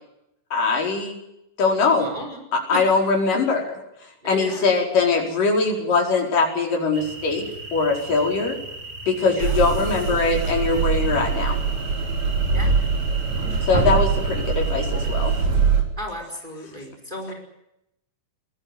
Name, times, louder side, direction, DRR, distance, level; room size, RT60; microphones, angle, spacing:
voice 1, 0.5-1.2 1.6-2.1 2.5-3.7 4.2-7.4 7.7-8.6 9.1-11.6 13.6-15.3, left 4 dB, 80° left, 1 dB, 6.2 m, -21 dB
voice 2, 1.9-3.0 4.2-4.6 9.2-9.6 12.5-12.7 16.0-17.3, equal, 15° right, 3 dB, 5.0 m, -35 dB
sound 1, 6.9-15.4, right 2 dB, 35° right, 3.4 m, -38 dB
sound 2, 9.4-15.8, right 5 dB, 55° right, 4.3 m, -23 dB
22.0 x 17.5 x 9.9 m, 0.83 s
omnidirectional pair, 3.8 m